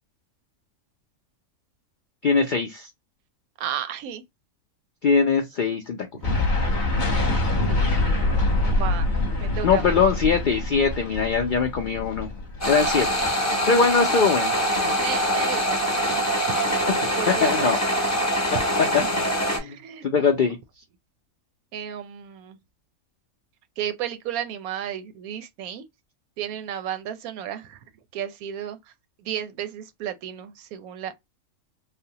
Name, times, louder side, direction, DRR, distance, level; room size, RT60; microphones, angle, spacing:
voice 1, 2.2-2.9 5.0-6.0 9.6-12.3 12.6-13.1 13.7-14.9 17.3-17.8 19.1-19.2 19.5-19.8 20.0-20.6, left 5 dB, 75° left, 0.4 m, -22 dB
voice 2, 3.6-4.2 7.7-8.2 8.6-9.1 9.4-9.9 13.4-13.9 14.9-16.5 17.2-17.7 19.5-20.1 21.7-22.6 23.8-25.8 26.4-27.8 28.1-28.8 29.2-31.1, right 10 dB, 85° right, 1.1 m, -33 dB
sound 1, 6.2-13.2, left 2 dB, 40° left, 0.9 m, -25 dB
sound 2, 12.6-19.6, equal, 15° left, 0.7 m, -24 dB
3.3 x 2.1 x 2.7 m
omnidirectional pair, 1.5 m